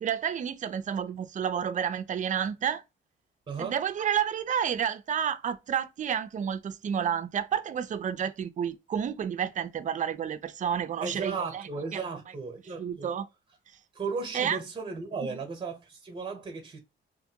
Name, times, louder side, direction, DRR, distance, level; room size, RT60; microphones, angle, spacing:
voice 1, 0.0-2.8 3.6-12.1 12.8-13.3 14.3-14.6 15.3-15.4, right 8 dB, 40° right, 0.4 m, -30 dB
voice 2, 3.5-3.8 11.0-13.1 13.9-16.8, right 4 dB, 25° right, 0.9 m, -35 dB
2.5 x 2.5 x 2.8 m
cardioid pair, 90°, 20 cm